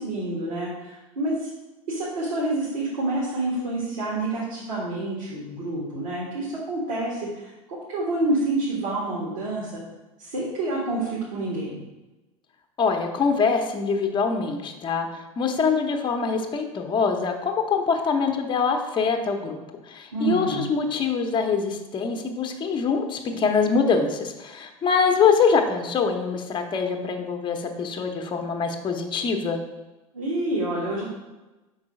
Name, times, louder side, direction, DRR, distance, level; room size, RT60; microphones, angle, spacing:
voice 1, 0.0-1.4 1.9-9.8 10.2-11.8 20.1-20.7 30.1-31.0, right 2 dB, 70° right, -5 dB, 1.8 m, -28 dB
voice 2, 12.8-19.6 19.9-29.6, left 5 dB, 25° left, 4 dB, 0.8 m, -24 dB
5.3 x 4.0 x 5.2 m, 1.1 s
figure-of-eight pair, 80°, 18 cm